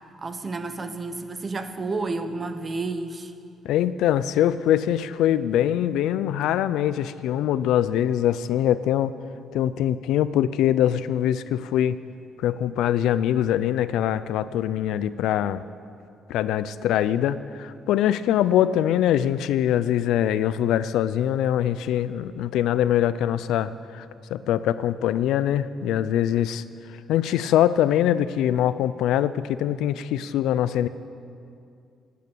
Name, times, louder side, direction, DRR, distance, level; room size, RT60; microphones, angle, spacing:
voice 1, 0.2-3.3, right 3 dB, 35° right, 9 dB, 1.2 m, -31 dB
voice 2, 3.6-9.1 9.5-12.0 12.4-15.6 16.3-24.0 24.3-26.6 27.1-30.9, left 11 dB, 90° left, 15 dB, 0.5 m, -23 dB
17.0 x 9.4 x 8.4 m, 2.4 s
cardioid pair, 90°, 0 cm